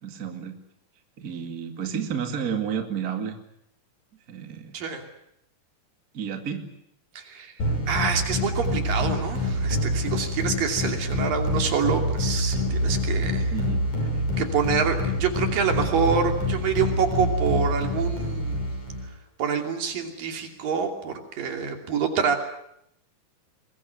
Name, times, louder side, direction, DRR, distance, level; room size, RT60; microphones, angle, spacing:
voice 1, 0.0-0.6 1.2-3.4 4.3-4.8 6.1-6.6 13.5-13.9, right 7 dB, 30° right, 6 dB, 2.2 m, -31 dB
voice 2, 7.2-7.5 7.9-13.5 14.4-18.6 19.4-22.4, right 6 dB, 80° right, 5 dB, 4.6 m, -26 dB
sound 1, 7.6-19.1, left 1 dB, 60° left, 7.7 m, -26 dB
23.0 x 21.5 x 9.5 m, 0.76 s
omnidirectional pair, 3.9 m